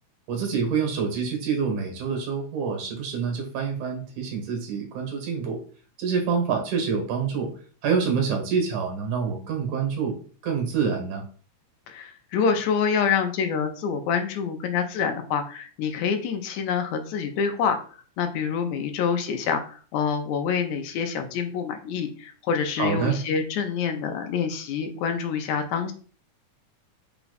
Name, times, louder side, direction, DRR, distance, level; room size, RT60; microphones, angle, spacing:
voice 1, 0.3-5.6 6.0-7.5 7.8-10.2 10.4-11.2 22.8-23.2, right 6 dB, 85° right, 3 dB, 2.8 m, -26 dB
voice 2, 11.9-17.8 18.2-25.9, left 6 dB, 80° left, 6 dB, 1.8 m, -26 dB
5.7 x 2.3 x 4.0 m, 0.41 s
omnidirectional pair, 3.4 m